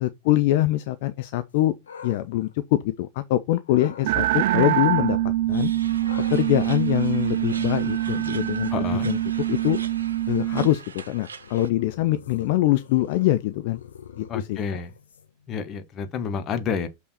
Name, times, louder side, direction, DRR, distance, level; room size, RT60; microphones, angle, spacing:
voice 1, 0.0-1.7 2.0-5.2 5.5-5.7 6.3-9.2 9.5-9.8 10.3-13.8 14.2-14.6, left 15 dB, 50° left, 0.5 m, -23 dB
sound 1, 1.5-3.2 3.6-4.1 6.0-15.5, left 7 dB, 70° left, 1.3 m, -47 dB
sound 2, 4.0-10.7, right 14 dB, 50° right, 0.3 m, -24 dB
sound 3, 5.5-11.7, right 5 dB, 70° right, 0.8 m, -42 dB
voice 2, 8.7-9.1 14.3-14.9 15.5-16.9, left 6 dB, 30° left, 1.3 m, -29 dB
6.4 x 5.5 x 4.2 m
figure-of-eight pair, 90°, 0 cm